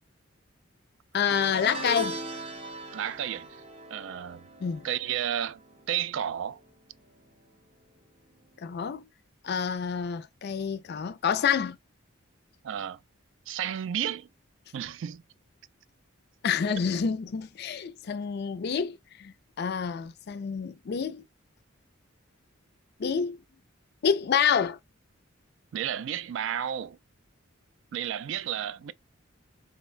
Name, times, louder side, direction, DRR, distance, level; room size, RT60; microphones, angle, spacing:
voice 1, 1.1-2.2 4.6-4.9 8.6-9.0 9.4-11.8 16.4-21.2 23.0-23.4 24.0-24.8, left 7 dB, 55° left, 0.4 m, -28 dB
sound 1, 1.3-6.7 6.9-7.3 8.6-8.7, right 1 dB, 30° right, 0.7 m, -40 dB
voice 2, 2.9-3.6 3.9-4.4 4.8-5.6 5.9-6.6 12.6-13.0 13.5-14.3 14.7-15.2 25.7-27.0 27.9-28.9, right 9 dB, 65° right, 0.3 m, -32 dB
3.9 x 2.2 x 2.3 m
head